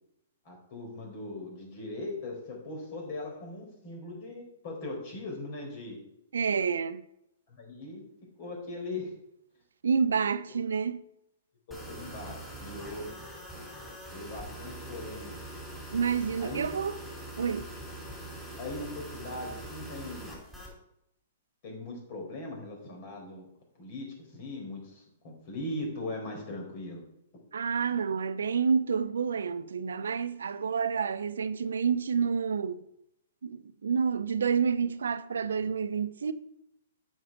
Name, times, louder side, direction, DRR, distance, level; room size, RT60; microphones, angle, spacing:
voice 1, 0.4-6.0 7.5-8.0 8.4-9.1 10.5-10.6 11.7-13.1 14.1-15.3 16.4-16.7 18.6-20.4 21.6-23.5 23.8-27.0 35.5-35.7, left 2 dB, 50° left, 4.5 m, -39 dB
voice 2, 6.3-7.0 9.8-11.1 15.9-17.0 17.4-17.7 27.5-32.8 33.4-36.3, right 6 dB, 80° right, 0.6 m, -29 dB
sound 1, 11.7-20.7, right 1 dB, 5° left, 4.7 m, -43 dB
9.1 x 6.3 x 6.1 m
hypercardioid pair, 130°, 0 cm